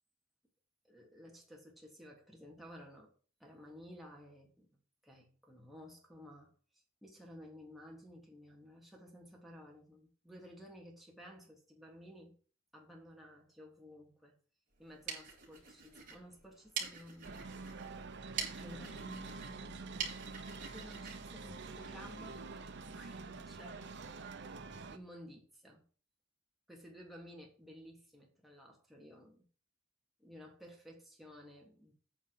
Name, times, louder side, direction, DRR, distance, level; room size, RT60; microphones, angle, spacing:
voice 1, 0.9-3.1 3.4-12.3 12.7-14.4 14.8-17.5 18.6-20.3 20.7-22.5 22.8-25.8 26.7-29.4 30.2-31.9, equal, ahead, -2 dB, 3.0 m, -54 dB
sound 1, 14.8-22.3, right 6 dB, 40° right, 4.0 m, -46 dB
sound 2, 17.2-25.0, right 4 dB, 60° right, 0.9 m, -47 dB
9.0 x 5.3 x 7.6 m, 0.39 s
head